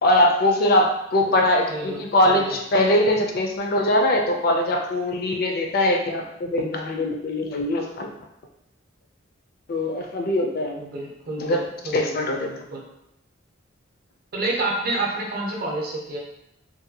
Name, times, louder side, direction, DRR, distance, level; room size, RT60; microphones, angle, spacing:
voice 1, 0.0-8.1 9.7-10.8 11.4-11.6 11.9-12.5, left 1 dB, 50° left, 2 dB, 0.4 m, -22 dB
voice 2, 1.7-2.6 10.8-12.8 14.3-16.2, right 2 dB, 50° right, -1 dB, 0.6 m, -29 dB
2.6 x 2.2 x 2.7 m, 0.81 s
head